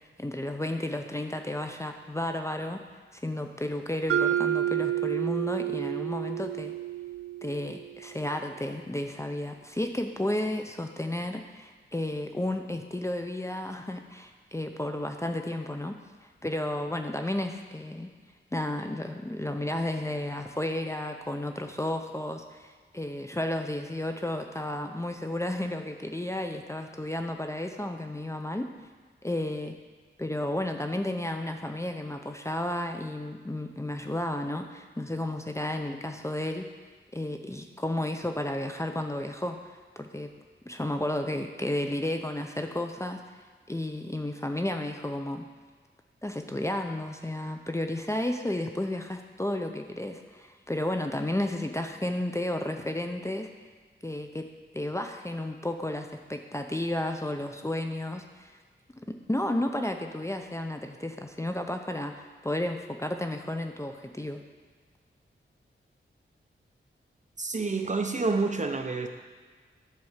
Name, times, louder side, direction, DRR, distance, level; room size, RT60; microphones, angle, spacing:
voice 1, 0.2-2.8 3.1-6.7 7.4-15.9 16.2-18.1 18.5-28.7 29.2-29.8 30.2-36.7 37.1-39.6 40.0-40.3 40.7-43.4 43.7-45.4 46.2-53.5 54.0-54.4 54.7-58.5 59.3-64.4, left 1 dB, 15° left, 5 dB, 0.7 m, -32 dB
Mallet percussion, 4.1-8.1, right 11 dB, 85° right, 0.6 m, -30 dB
voice 2, 67.4-69.1, right 3 dB, 35° right, 5 dB, 0.9 m, -28 dB
10.5 x 4.7 x 7.3 m, 1.5 s
wide cardioid pair, 75°, 21 cm